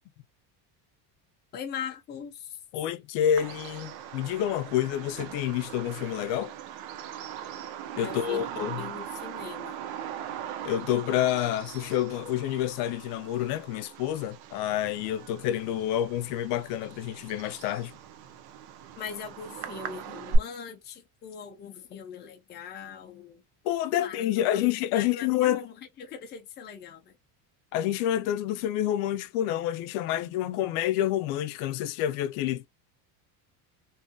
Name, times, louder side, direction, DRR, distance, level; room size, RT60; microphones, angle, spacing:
voice 1, 1.5-2.6 8.0-8.5 8.8-9.8 19.0-23.4 24.0-24.7 24.9-27.2, left 7 dB, 20° left, 0.5 m, -41 dB
voice 2, 2.7-6.5 8.0-8.8 10.6-18.0 23.6-25.6 27.7-32.7, left 11 dB, 80° left, 0.6 m, -28 dB
Bird vocalization bird call bird song, 3.4-20.4, right 6 dB, 55° right, 0.5 m, -39 dB
2.7 x 2.5 x 2.2 m
cardioid pair, 155°, 47 cm